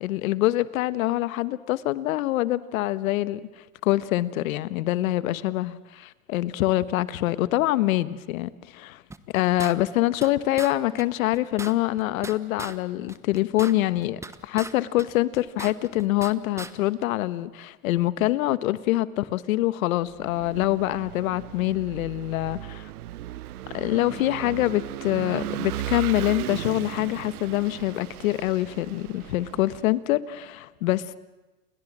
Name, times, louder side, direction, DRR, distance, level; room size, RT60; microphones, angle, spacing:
voice 1, 0.0-3.4 3.8-9.0 9.3-22.9 23.7-31.2, left 16 dB, 70° left, 1.3 m, -25 dB
sound 1, 9.1-10.3 10.6-10.7 11.0-11.1 11.3-12.8 13.1-14.7 15.0-16.3 16.6-16.7, right 3 dB, 5° right, 1.0 m, -38 dB
Vehicle / Engine, 20.1-29.9, right 14 dB, 85° right, 0.8 m, -36 dB
30.0 x 21.5 x 7.5 m
hypercardioid pair, 125°, 43 cm